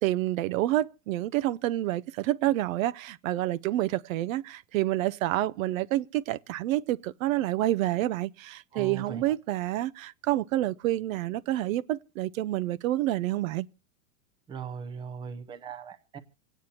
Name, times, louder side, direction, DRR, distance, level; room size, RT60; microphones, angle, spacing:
voice 1, 0.0-13.7, right 15 dB, 60° right, 0.5 m, -28 dB
voice 2, 8.7-9.2 14.5-16.2, right 6 dB, 10° right, 0.5 m, -39 dB
27.5 x 9.2 x 2.8 m
supercardioid pair, 145°, 46 cm